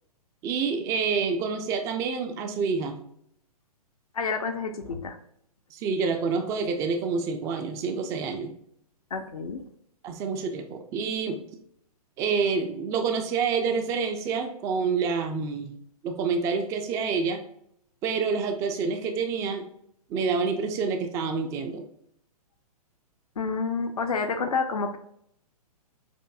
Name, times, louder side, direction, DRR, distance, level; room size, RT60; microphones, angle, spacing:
voice 1, 0.4-3.0 5.7-8.5 10.0-11.4 12.2-15.7 16.0-17.4 18.0-19.7 20.1-21.8, right 5 dB, 15° right, 6 dB, 0.4 m, -27 dB
voice 2, 4.1-5.2 9.1-9.7 23.4-25.0, left 4 dB, 65° left, 6 dB, 0.6 m, -29 dB
6.8 x 2.6 x 2.3 m, 0.71 s
figure-of-eight pair, 120°, 20 cm